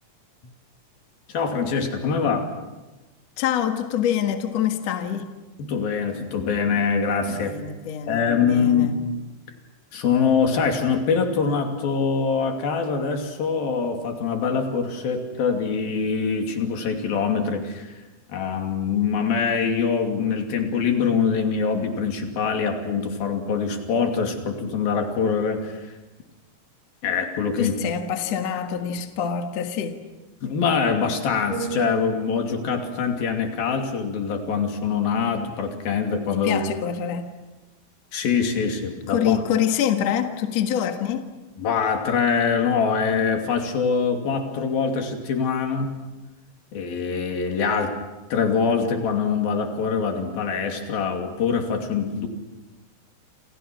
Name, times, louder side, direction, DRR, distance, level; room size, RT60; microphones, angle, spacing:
voice 1, 1.3-2.5 5.6-7.5 8.1-8.9 9.9-17.9 18.3-25.9 27.0-27.8 30.4-36.6 38.1-39.4 41.6-45.9 46.7-48.0 48.3-52.3, left 6 dB, 80° left, 4 dB, 4.6 m, -24 dB
voice 2, 3.4-5.3 7.3-9.0 27.6-30.0 36.4-37.3 39.1-41.2, left 9 dB, 55° left, 5 dB, 2.5 m, -25 dB
sound 1, 31.5-35.4 35.9-36.2, right 5 dB, 65° right, 3.6 m, -38 dB
29.0 x 28.0 x 6.2 m, 1.1 s
omnidirectional pair, 4.2 m